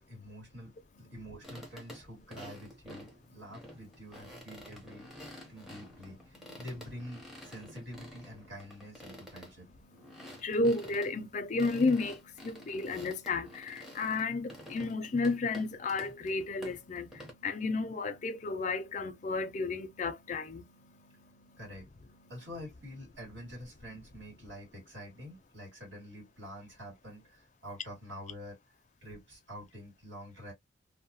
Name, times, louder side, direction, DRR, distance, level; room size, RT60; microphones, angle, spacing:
voice 1, 0.0-5.1 5.5-9.7 21.6-21.9 22.3-28.6 29.0-30.5, equal, 70° right, 2.0 m, -47 dB
sound 1, 1.4-17.3, equal, ahead, 0.6 m, -50 dB
voice 2, 9.9-21.6, left 3 dB, 40° left, 0.4 m, -33 dB
2.8 x 2.0 x 2.7 m
head